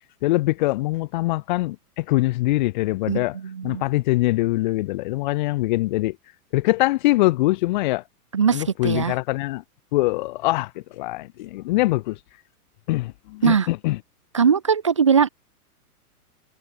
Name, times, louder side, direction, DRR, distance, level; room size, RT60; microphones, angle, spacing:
voice 1, 0.2-3.4 3.6-6.2 6.5-8.0 8.5-9.6 9.9-12.2 12.9-14.0, left 19 dB, 30° left, 2.5 m, -23 dB
voice 2, 3.1-3.8 8.3-9.1 13.4-13.7 14.3-15.3, right 6 dB, 20° right, 0.5 m, -20 dB
hypercardioid pair, 180°, 46 cm